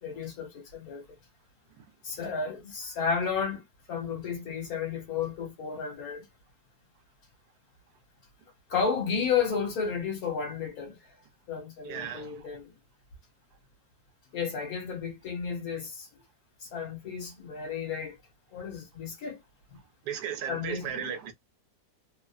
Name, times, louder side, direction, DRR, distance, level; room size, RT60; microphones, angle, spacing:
voice 1, 0.0-1.0 2.0-3.6 3.9-6.3 8.7-11.1 11.5-12.7 14.3-16.2 16.6-18.2 18.5-19.4 19.7-19.8 20.5-21.0, left 6 dB, 60° left, 1.4 m, -32 dB
voice 2, 11.8-12.4 20.0-21.3, right 8 dB, 70° right, 1.2 m, -35 dB
3.1 x 2.1 x 2.3 m
omnidirectional pair, 1.9 m